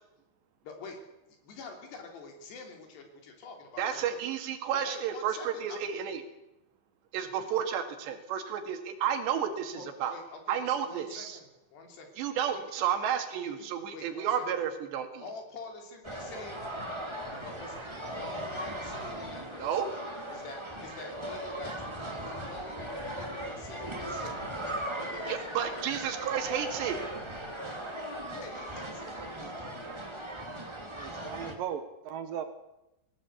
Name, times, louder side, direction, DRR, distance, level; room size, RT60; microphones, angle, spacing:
voice 1, 0.6-1.0 1.4-4.3 4.7-6.0 9.7-12.1 12.5-12.6 13.9-14.5 15.2-16.6 17.4-19.8 20.3-24.3 25.1-25.9 28.3-29.7, left 3 dB, 75° left, 4 dB, 5.4 m, -46 dB
voice 2, 3.8-6.2 7.1-10.2 10.5-11.4 12.2-15.2 19.6-19.9 25.3-27.0, right 8 dB, 85° right, 7 dB, 4.2 m, -31 dB
sound 1, 16.0-31.5, right 1 dB, 10° right, 1.3 m, -38 dB
voice 3, 30.9-32.4, right 9 dB, 65° right, 9 dB, 2.5 m, -37 dB
19.0 x 17.5 x 8.4 m, 0.91 s
omnidirectional pair, 4.9 m